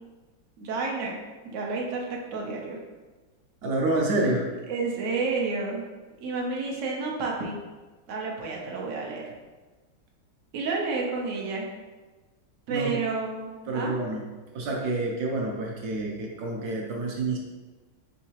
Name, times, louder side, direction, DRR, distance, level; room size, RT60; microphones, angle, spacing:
voice 1, 0.6-1.2 1.4-2.0 2.3-2.8 4.7-5.8 6.2-7.6 8.1-9.3 10.5-11.7 12.7-13.9, right 4 dB, 90° right, -2 dB, 0.6 m, -30 dB
voice 2, 3.6-4.5 12.7-13.0 13.7-14.2 14.5-17.4, right 2 dB, 70° right, 0 dB, 0.9 m, -28 dB
4.5 x 4.0 x 2.8 m, 1.2 s
omnidirectional pair, 2.3 m